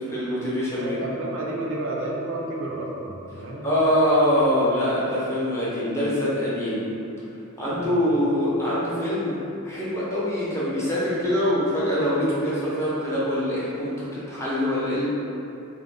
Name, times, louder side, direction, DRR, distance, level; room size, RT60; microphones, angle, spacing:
voice 1, 0.1-1.0 3.6-6.9 7.6-9.4 9.6-15.0, equal, 15° left, -9 dB, 0.5 m, -24 dB
voice 2, 0.8-3.7 7.7-8.0, right 1 dB, 65° right, -2 dB, 0.4 m, -31 dB
2.5 x 2.0 x 3.2 m, 2.7 s
head